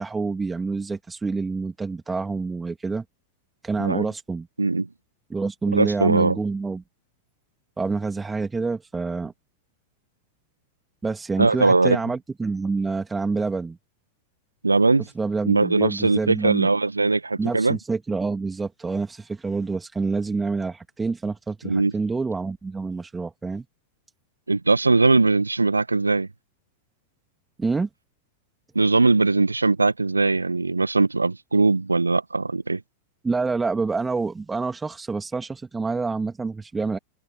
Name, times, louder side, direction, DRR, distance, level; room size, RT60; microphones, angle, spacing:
voice 1, 0.0-3.0 3.6-4.5 5.3-6.8 7.8-9.3 11.0-13.8 15.2-16.7 17.4-23.6 27.6-27.9 33.2-37.0, right 4 dB, 10° right, 2.7 m, -27 dB
voice 2, 5.7-6.4 11.4-12.0 14.6-15.0 15.5-17.8 21.6-21.9 24.5-26.3 28.7-32.8, right 3 dB, 80° right, 1.7 m, -20 dB
figure-of-eight pair, 90°, 0 cm